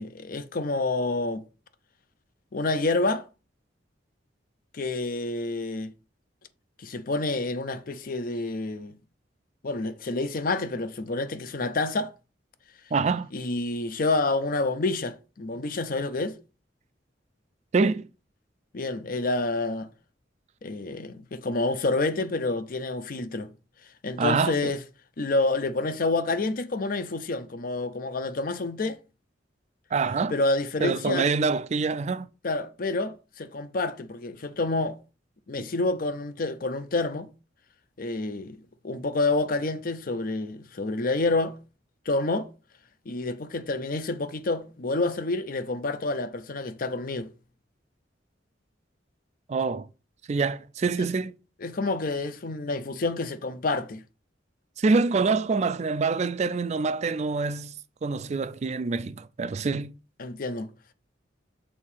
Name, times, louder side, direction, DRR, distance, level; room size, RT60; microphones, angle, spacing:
voice 1, 0.0-1.4 2.5-3.3 4.7-5.9 6.8-8.9 9.6-12.1 13.3-16.4 18.7-19.9 20.6-23.5 24.0-24.8 25.2-29.0 30.3-31.3 32.4-35.0 35.5-37.3 38.0-38.6 38.8-41.6 42.1-42.5 43.1-47.3 51.6-54.0 60.2-60.7, left 2 dB, 50° left, 0.6 m, -28 dB
voice 2, 12.9-13.3 17.7-18.1 24.2-24.7 29.9-30.3 30.8-32.3 35.6-35.7 49.5-49.9 50.3-51.3 54.8-57.7 58.0-59.9, right 4 dB, 40° right, 0.4 m, -25 dB
6.4 x 2.8 x 5.5 m
head